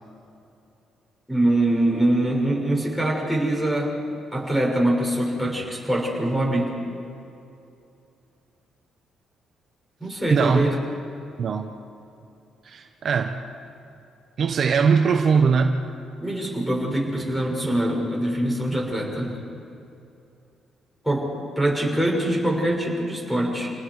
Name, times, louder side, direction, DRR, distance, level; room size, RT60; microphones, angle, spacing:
voice 1, 1.3-3.9 4.3-6.7 10.0-10.7 16.2-19.4 21.0-23.7, right 1 dB, 5° left, -1 dB, 6.4 m, -23 dB
voice 2, 10.3-10.7 11.4-11.7 12.6-13.4 14.4-15.8, right 5 dB, 55° right, 5 dB, 1.2 m, -21 dB
29.0 x 19.0 x 4.9 m, 2.7 s
cardioid pair, 90°, 0 cm